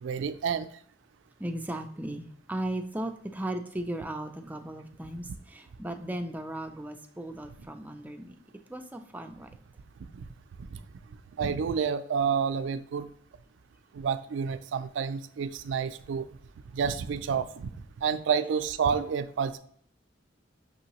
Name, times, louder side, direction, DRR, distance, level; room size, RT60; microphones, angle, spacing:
voice 1, 0.0-0.7 10.1-10.2 10.7-10.8 11.4-13.1 13.9-16.2 16.7-17.7 18.0-19.6, right 6 dB, 80° right, 11 dB, 0.3 m, -29 dB
voice 2, 1.4-8.4 8.7-9.5, right 1 dB, 10° right, 6 dB, 0.3 m, -36 dB
6.0 x 2.8 x 2.9 m, 0.63 s
head